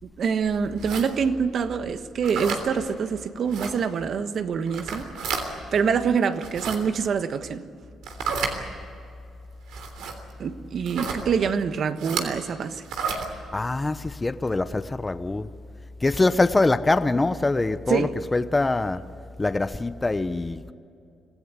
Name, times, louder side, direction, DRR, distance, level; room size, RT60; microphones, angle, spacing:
voice 1, 0.0-5.1 5.7-7.7 10.4-12.8 17.9-18.1, right 6 dB, 55° right, 1.2 m, -25 dB
sound 1, 0.8-1.1 2.2-2.6 3.5-3.7 4.7-5.4 6.3-6.8 8.0-8.6 9.7-10.1 10.8-11.2 12.0-12.3 12.8-13.3, right 5 dB, 85° right, 3.3 m, -30 dB
voice 2, 13.5-15.5 16.0-19.0 19.4-20.7, left 2 dB, 20° left, 0.8 m, -24 dB
25.5 x 16.0 x 8.4 m
cardioid pair, 90°, 0 cm